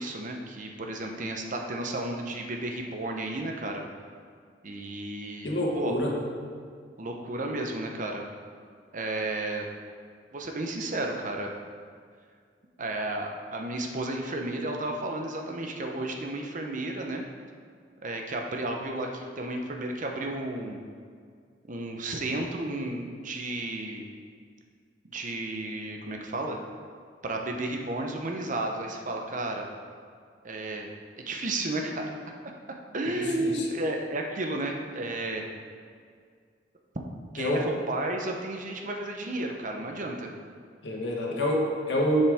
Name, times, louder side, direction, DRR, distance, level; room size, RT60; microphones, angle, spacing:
voice 1, 0.0-3.8 4.6-5.9 7.0-8.2 8.9-9.7 10.3-11.5 12.8-17.2 18.0-20.8 21.7-24.0 25.0-26.6 27.2-29.7 30.4-30.9 31.3-32.1 32.9-35.5 37.3-40.3, right 2 dB, 45° right, 2 dB, 0.8 m, -32 dB
voice 2, 5.4-6.2 33.0-33.6 37.4-37.7 40.8-42.2, equal, 85° left, -2 dB, 1.5 m, -27 dB
10.0 x 5.5 x 3.6 m, 2.1 s
head